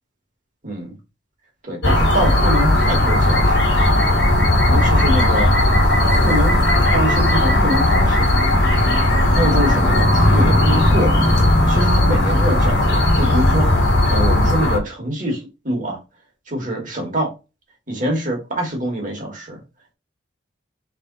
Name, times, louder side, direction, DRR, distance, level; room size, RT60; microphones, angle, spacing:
voice 1, 0.6-0.9 1.6-3.6 4.7-5.5 6.2-6.6 6.9-8.4 9.3-11.3 11.7-13.8 14.1-16.0 16.5-17.3 17.9-19.6, equal, 40° right, 1.6 m, -24 dB
sound 1, 1.8-14.8, left 1 dB, 60° left, 1.4 m, -16 dB
3.4 x 3.4 x 3.9 m
head